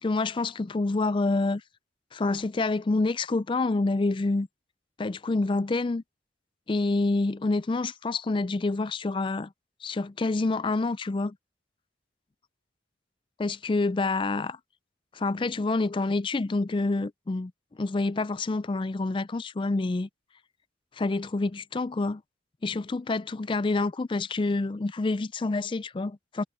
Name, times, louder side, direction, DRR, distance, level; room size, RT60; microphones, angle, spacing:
voice 1, 0.0-1.6 2.1-4.5 5.0-6.0 6.7-9.5 9.8-11.4 13.4-14.6 15.1-17.5 17.8-20.1 21.0-22.2 22.6-26.4, left 3 dB, 25° left, 0.4 m, -27 dB
head